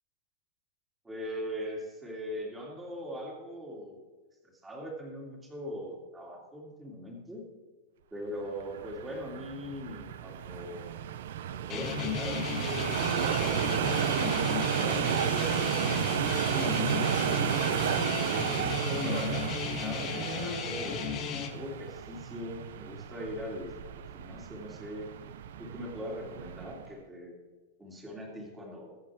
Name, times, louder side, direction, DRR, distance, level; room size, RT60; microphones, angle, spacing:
voice 1, 1.0-4.0 4.6-7.4 8.1-10.9 11.5-16.0 16.6-21.0 21.5-25.2 25.6-27.4 27.8-29.0, equal, 10° right, -2 dB, 2.6 m, -41 dB
sound 1, 8.6-26.9, right 10 dB, 70° right, 0.6 m, -32 dB
sound 2, 11.7-21.5, left 7 dB, 30° left, 1.8 m, -35 dB
22.0 x 7.6 x 3.6 m, 1.3 s
supercardioid pair, 160°, 0 cm